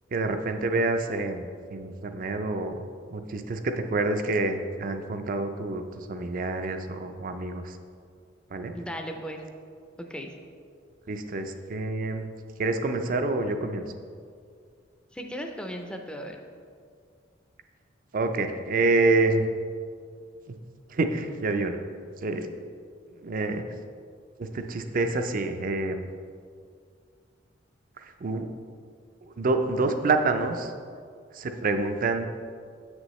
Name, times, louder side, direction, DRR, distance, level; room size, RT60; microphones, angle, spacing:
voice 1, 0.1-2.8 3.1-7.8 8.5-8.7 11.1-12.3 12.6-13.9 18.1-19.4 20.9-21.8 22.2-22.5 23.2-23.6 24.4-26.0 28.0-28.5 29.4-30.7 31.3-32.3, right 3 dB, 45° right, 7 dB, 0.5 m, -27 dB
voice 2, 8.8-9.4 10.0-10.3 15.1-16.4, equal, 5° left, 3 dB, 0.5 m, -36 dB
7.5 x 6.4 x 3.1 m, 2.2 s
head